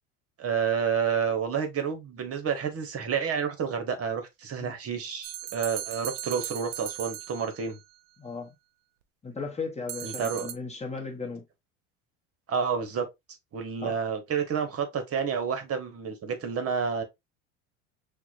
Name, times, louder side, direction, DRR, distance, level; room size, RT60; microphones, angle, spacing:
voice 1, 0.4-7.8 10.0-10.5 12.5-13.1 13.5-17.0, right 6 dB, 40° right, 1.1 m, -29 dB
sound 1, 5.2-7.8 9.9-10.5, right 13 dB, 70° right, 0.6 m, -37 dB
voice 2, 8.2-8.5 9.2-11.4 13.8-14.0, left 4 dB, 20° left, 0.9 m, -36 dB
5.8 x 2.3 x 2.5 m
hypercardioid pair, 85°, 37 cm